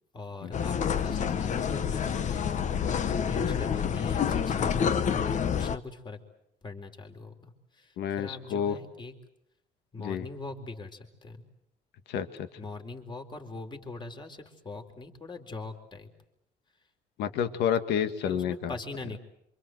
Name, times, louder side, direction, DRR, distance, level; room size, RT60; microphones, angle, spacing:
voice 1, 0.1-6.2 6.6-9.1 9.9-11.4 12.6-16.1 18.2-19.2, left 3 dB, 25° left, 5 dB, 4.1 m, -42 dB
sound 1, 0.5-5.8, left 7 dB, 45° left, 1.3 m, -28 dB
voice 2, 8.0-8.8 10.0-10.2 12.1-12.5 17.2-18.7, left 8 dB, 80° left, 10 dB, 1.8 m, -29 dB
27.0 x 26.0 x 7.9 m, 0.77 s
cardioid pair, 110°, 17 cm